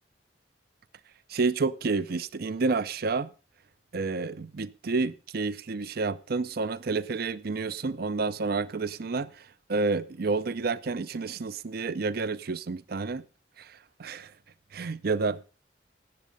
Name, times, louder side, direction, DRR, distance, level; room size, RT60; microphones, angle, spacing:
voice 1, 1.3-3.3 3.9-13.2 13.6-14.3 14.7-15.4, right 4 dB, 60° right, 0.6 m, -30 dB
17.5 x 7.3 x 5.2 m
head